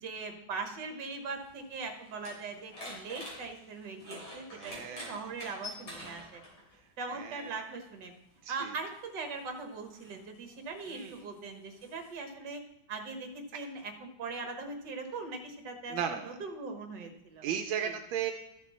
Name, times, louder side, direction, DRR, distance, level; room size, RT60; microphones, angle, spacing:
voice 1, 0.0-6.4 7.0-8.1 8.5-12.6 12.9-17.5 17.8-17.9, right 4 dB, 65° right, 5 dB, 1.8 m, -40 dB
sound 1, 1.4-6.8 7.8-8.0 8.8-12.1, left 1 dB, 55° left, 3.7 m, -47 dB
voice 2, 4.5-5.2 7.1-7.5 8.4-8.8 10.9-11.3 15.9-16.4 17.4-18.3, right 8 dB, 85° right, 6 dB, 1.4 m, -36 dB
13.0 x 6.7 x 4.1 m, 0.86 s
omnidirectional pair, 2.1 m